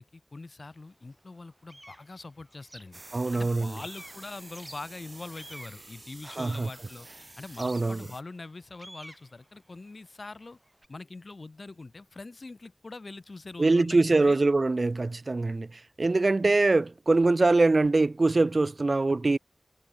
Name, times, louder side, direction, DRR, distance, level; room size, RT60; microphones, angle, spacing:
voice 1, 0.0-3.0 3.3-10.6 10.9-14.4, left 3 dB, 70° left, 2.5 m, -43 dB
sound 1, 0.6-0.7 1.2-3.5 3.8-6.9 7.5-10.9, right 1 dB, 20° right, 4.4 m, -51 dB
sound 2, 2.9-8.2, right 2 dB, 45° right, 2.8 m, -49 dB
voice 2, 3.1-3.7 6.4-6.7 7.6-8.0 13.6-19.4, right 3 dB, 65° right, 0.8 m, -23 dB
wide cardioid pair, 60°, 0 cm